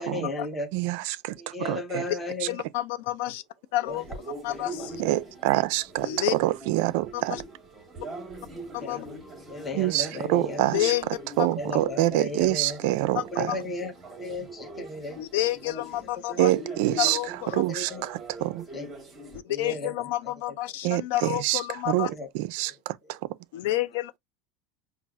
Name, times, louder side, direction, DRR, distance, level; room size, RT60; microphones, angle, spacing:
voice 1, 0.0-0.7 1.4-2.6 3.9-4.0 4.5-4.9 8.8-9.2 9.5-10.6 11.6-12.8 13.3-13.9 14.2-15.2 16.3-16.4 17.5-18.0 18.3-18.9 19.5-19.9 22.1-22.3 22.6-22.7, left 2 dB, 15° left, 0.6 m, -35 dB
voice 2, 0.7-1.3 1.6-2.0 5.0-7.4 9.7-10.9 11.4-13.5 16.4-17.2 17.5-18.6 20.8-21.6 21.9-22.1 22.3-23.2, right 17 dB, 55° right, 0.3 m, -26 dB
voice 3, 2.5-3.4 3.7-4.0 4.4-5.0 6.0-6.4 7.1-7.4 8.7-9.1 10.6-11.1 11.4-11.5 13.1-13.6 15.2-16.5 17.0-17.6 19.3-22.1 23.5-24.2, left 15 dB, 65° left, 0.4 m, -29 dB
sound 1, 3.9-19.4, right 2 dB, 10° right, 1.0 m, -42 dB
5.4 x 2.3 x 2.3 m
supercardioid pair, 170°, 0 cm